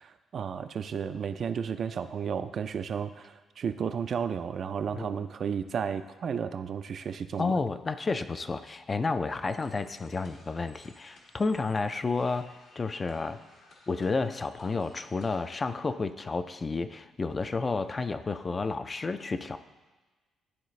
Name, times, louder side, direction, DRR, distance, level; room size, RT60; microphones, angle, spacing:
voice 1, 0.0-7.6, right 7 dB, 55° right, 10 dB, 0.3 m, -33 dB
voice 2, 4.9-5.3 7.4-13.4 13.9-19.6, left 3 dB, 30° left, 11 dB, 0.3 m, -31 dB
sound 1, 9.4-15.8, left 2 dB, 70° left, 1.3 m, -58 dB
11.5 x 4.0 x 3.1 m, 1.3 s
cardioid pair, 90°, 0 cm